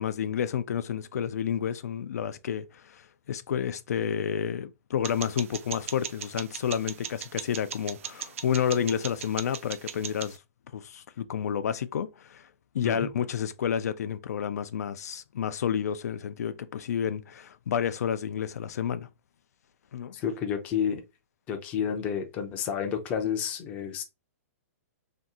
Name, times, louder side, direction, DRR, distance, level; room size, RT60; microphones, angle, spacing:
voice 1, 0.0-10.4 10.7-12.4 12.7-19.1 19.9-20.1, left 8 dB, 90° left, 0.4 m, -30 dB
sound 1, 5.0-10.4, right 8 dB, 60° right, 0.4 m, -39 dB
voice 2, 20.1-21.0 21.5-24.0, left 8 dB, 15° left, 0.4 m, -30 dB
2.7 x 2.3 x 3.6 m
hypercardioid pair, 175°, 8 cm